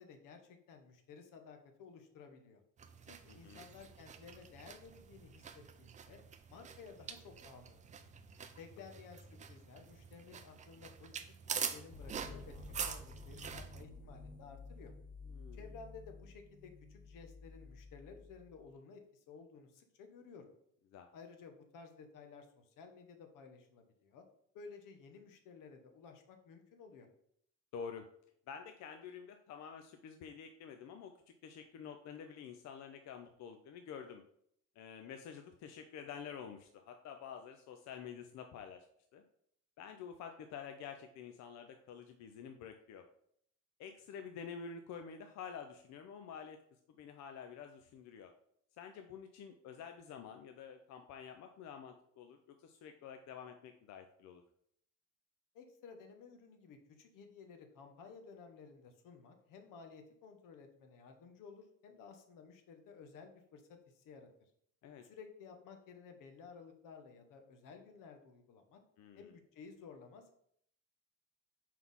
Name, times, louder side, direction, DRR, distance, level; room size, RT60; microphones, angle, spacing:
voice 1, 0.0-2.6 3.0-6.2 6.5-8.0 8.6-11.2 11.5-12.5 12.8-14.9 15.5-20.5 21.1-24.2 24.5-27.1 55.5-64.3 65.0-68.8 69.1-70.3, left 5 dB, 80° left, 6 dB, 1.1 m, -55 dB
sound 1, 2.8-13.8, right 7 dB, 25° right, 0.3 m, -46 dB
voice 2, 3.3-3.7 15.3-15.7 20.9-21.1 27.7-28.1 28.5-31.1 31.4-34.2 34.8-38.9 39.1-39.2 39.8-43.1 43.8-46.6 47.0-48.3 48.8-54.4 64.8-65.0 69.0-69.3, left 7 dB, 60° left, 6 dB, 0.5 m, -49 dB
sound 2, 11.9-18.7, left 3 dB, 15° left, 0.6 m, -52 dB
4.6 x 4.0 x 5.4 m, 0.69 s
cardioid pair, 165°, 31 cm